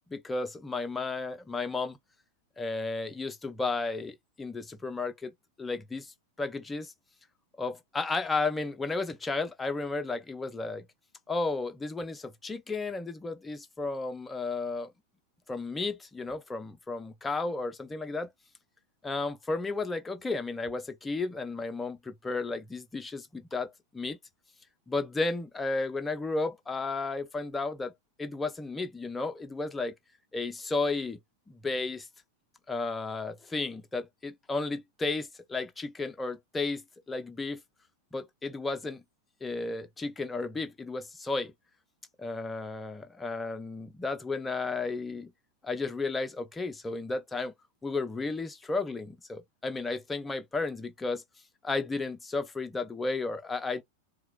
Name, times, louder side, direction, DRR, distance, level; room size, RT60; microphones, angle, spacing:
voice 1, 0.1-2.0 2.6-5.3 5.6-6.9 7.6-10.9 11.3-14.9 15.5-18.3 19.0-24.2 24.9-27.9 28.2-29.9 30.3-31.2 31.5-32.1 32.7-37.6 38.1-39.0 39.4-41.5 42.2-45.3 45.6-47.5 47.8-51.2 51.6-53.8, left 3 dB, 10° left, 0.6 m, -33 dB
4.5 x 2.3 x 2.2 m
figure-of-eight pair, 90°, 0 cm